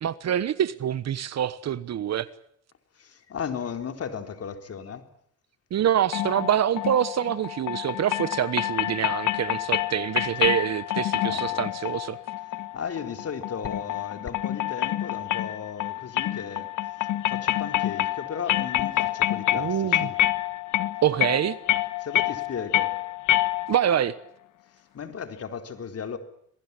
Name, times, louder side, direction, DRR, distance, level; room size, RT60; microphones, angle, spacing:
voice 1, 0.0-2.3 5.7-12.2 19.5-20.1 21.0-21.6 23.7-24.2, right 10 dB, 60° right, 1.2 m, -25 dB
voice 2, 3.0-5.0 11.2-11.7 12.7-16.7 17.0-20.2 22.0-22.9 24.9-26.2, left 7 dB, 50° left, 4.0 m, -35 dB
sound 1, 6.1-24.0, left 14 dB, 75° left, 1.5 m, -27 dB
26.5 x 19.5 x 8.4 m
cardioid pair, 90°, 30 cm